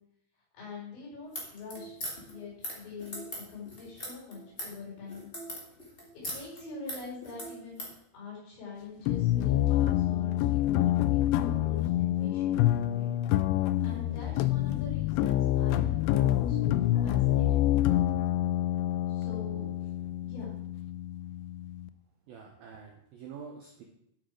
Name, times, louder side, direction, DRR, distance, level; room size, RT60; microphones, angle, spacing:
voice 1, 0.6-5.3 6.1-13.1 13.8-18.1 19.1-19.7 20.2-20.6, left 4 dB, 65° left, -5 dB, 6.6 m, -44 dB
sound 1, 1.2-7.9, equal, 30° left, 1.0 m, -40 dB
sound 2, 9.1-21.9, left 13 dB, 90° left, 2.5 m, -27 dB
voice 2, 22.3-23.8, right 6 dB, 85° right, 1 dB, 2.1 m, -46 dB
11.0 x 6.4 x 4.8 m, 0.75 s
omnidirectional pair, 5.6 m